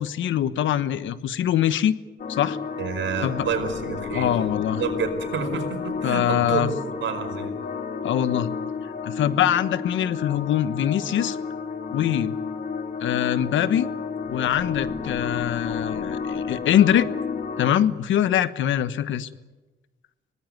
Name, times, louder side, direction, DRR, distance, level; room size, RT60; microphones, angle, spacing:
voice 1, 0.0-2.0 2.3-2.6 3.2-3.5 4.1-4.8 6.0-6.7 8.0-8.5 9.0-11.4 11.9-12.4 13.0-13.9 14.3-17.1 17.6-19.3, left 10 dB, 75° left, 14 dB, 1.2 m, -23 dB
sound 1, 2.2-17.7, left 5 dB, 50° left, 2.2 m, -31 dB
voice 2, 2.8-4.3 4.7-7.5, right 6 dB, 70° right, 6 dB, 5.0 m, -29 dB
24.5 x 18.5 x 9.6 m, 1.2 s
cardioid pair, 90°, 20 cm